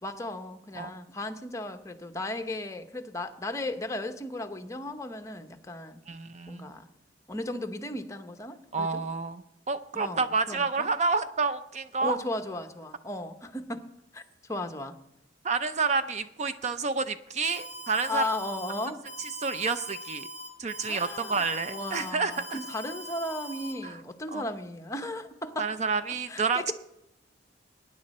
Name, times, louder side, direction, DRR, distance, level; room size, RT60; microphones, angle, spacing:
voice 1, 0.0-6.0 6.5-6.9 7.3-9.0 9.9-10.9 12.0-13.9 14.1-15.0 18.1-19.0 20.9-25.7 26.3-26.7, left 1 dB, 15° left, 6 dB, 0.9 m, -36 dB
voice 2, 6.1-6.7 8.7-12.2 15.4-18.3 19.4-20.3 20.6-22.6 23.8-24.0 24.3-24.4 25.6-26.7, right 4 dB, 40° right, 11 dB, 0.5 m, -29 dB
Alarm, 17.4-23.7, equal, 65° right, 6.5 m, -42 dB
19.0 x 9.8 x 4.2 m, 0.84 s
head